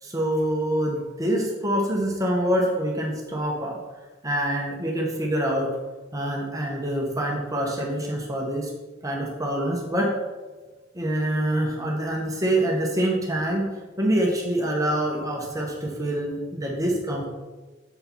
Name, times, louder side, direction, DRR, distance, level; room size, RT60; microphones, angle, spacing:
voice 1, 0.0-3.8 4.2-5.7 6.1-8.7 9.0-10.1 10.9-13.7 14.0-17.3, right 1 dB, 20° right, -1 dB, 1.3 m, -25 dB
7.0 x 6.6 x 4.7 m, 1.2 s
head